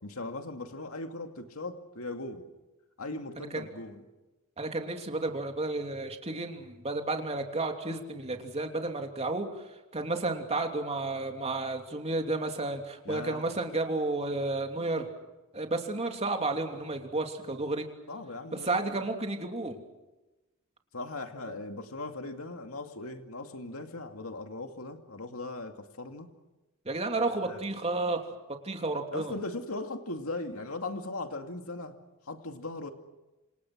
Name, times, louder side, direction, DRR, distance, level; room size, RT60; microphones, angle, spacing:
voice 1, 0.0-2.5 3.0-4.1 13.0-13.5 18.1-19.0 20.9-26.3 27.4-27.6 29.1-32.0 32.3-32.9, left 2 dB, 75° left, 5 dB, 2.5 m, -39 dB
voice 2, 4.6-9.5 9.9-15.1 15.5-17.8 18.5-19.8 26.8-28.2 28.6-29.3, right 2 dB, 30° right, 4 dB, 3.1 m, -32 dB
27.5 x 27.5 x 6.3 m, 1.1 s
head